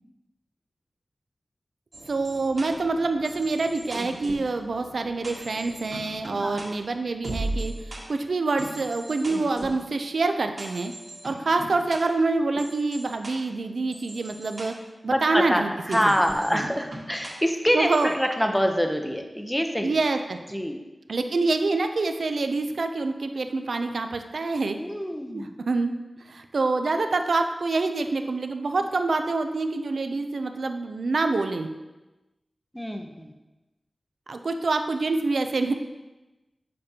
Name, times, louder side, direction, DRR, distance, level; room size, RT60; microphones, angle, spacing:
sound 1, 1.9-8.0 8.6-9.8 10.6-12.0 12.6-13.3 13.9-14.6 15.9-17.3 17.9-18.1, right 1 dB, 65° right, 1.5 m, -38 dB
voice 1, 2.1-10.9 11.2-14.7 15.0-16.1 16.5-16.7 17.7-18.1 19.8-20.4 21.1-24.8 25.3-25.9 26.3-31.7 34.3-35.7, right 3 dB, 80° right, 7 dB, 0.4 m, -26 dB
voice 2, 15.1-19.9 20.5-20.8 24.7-25.5 32.7-33.3, equal, 5° left, 4 dB, 0.7 m, -26 dB
6.8 x 5.1 x 2.8 m, 1.1 s
wide cardioid pair, 55°, 0 cm